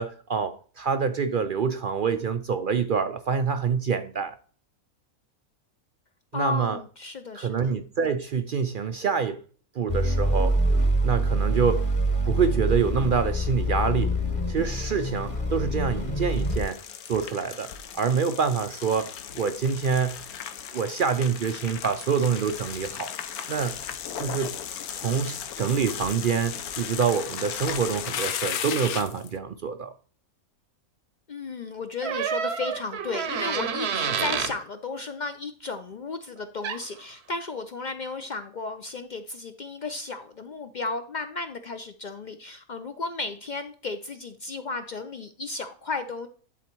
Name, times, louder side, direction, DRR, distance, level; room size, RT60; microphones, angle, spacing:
voice 1, 0.0-4.4 6.3-6.8 7.3-9.4 9.7-10.6 11.0-11.9 12.3-14.2 14.5-16.8 17.1-20.2 20.7-23.1 23.5-23.8 24.2-24.6 24.9-29.9, right 6 dB, 70° right, 0.4 m, -26 dB
voice 2, 6.3-7.8 31.3-46.3, left 3 dB, 60° left, 0.4 m, -34 dB
sound 1, 9.9-16.6, right 1 dB, 25° left, 1.2 m, -25 dB
sound 2, 16.3-29.3, left 9 dB, 80° left, 1.2 m, -36 dB
sound 3, 32.0-34.6 36.6-36.8, right 7 dB, 55° right, 0.9 m, -29 dB
11.0 x 4.1 x 4.5 m
omnidirectional pair, 1.5 m